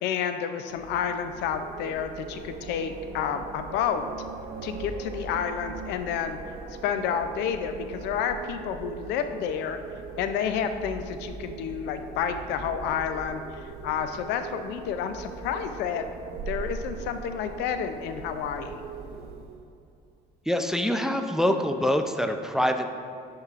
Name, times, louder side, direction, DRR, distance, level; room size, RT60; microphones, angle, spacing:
voice 1, 0.0-4.1 4.6-6.4 6.8-9.8 10.2-13.4 13.8-18.8, left 8 dB, 85° left, 8 dB, 0.5 m, -30 dB
Wind, 0.7-19.7, right 5 dB, 70° right, 0.5 m, -40 dB
voice 2, 20.5-22.9, equal, 5° right, 6 dB, 0.3 m, -25 dB
10.0 x 4.7 x 2.4 m, 2.6 s
cardioid pair, 110°, 17 cm